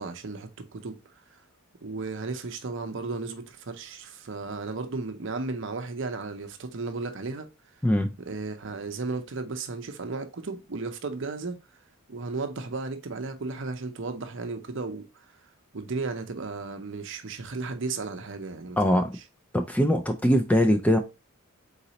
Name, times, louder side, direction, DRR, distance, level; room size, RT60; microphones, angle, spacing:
voice 1, 0.0-1.4 1.8-7.5 8.2-11.6 12.1-15.3 15.7-19.2, right 3 dB, 55° right, 0.6 m, -34 dB
voice 2, 7.8-8.1 18.8-19.2 19.5-21.0, equal, 5° left, 0.3 m, -22 dB
4.0 x 4.0 x 2.8 m
head